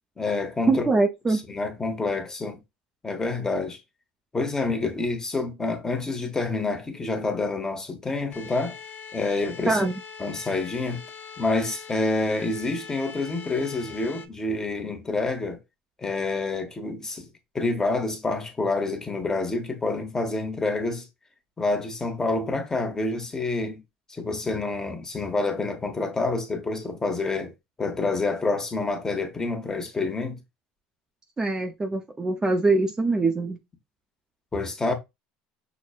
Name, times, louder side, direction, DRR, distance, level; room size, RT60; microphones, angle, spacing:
voice 1, 0.2-0.8 1.3-2.6 3.0-3.8 4.3-8.8 9.1-9.8 10.2-11.0 11.4-15.6 16.0-17.3 17.5-21.1 21.6-23.8 24.1-27.5 27.8-30.4 34.5-34.9, left 3 dB, 15° left, 0.9 m, -28 dB
voice 2, 0.7-1.4 9.7-9.9 31.4-33.6, right 3 dB, 20° right, 0.5 m, -23 dB
sound 1, 8.3-14.3, left 6 dB, 50° left, 0.6 m, -42 dB
5.9 x 2.1 x 2.4 m
supercardioid pair, 110°, 3 cm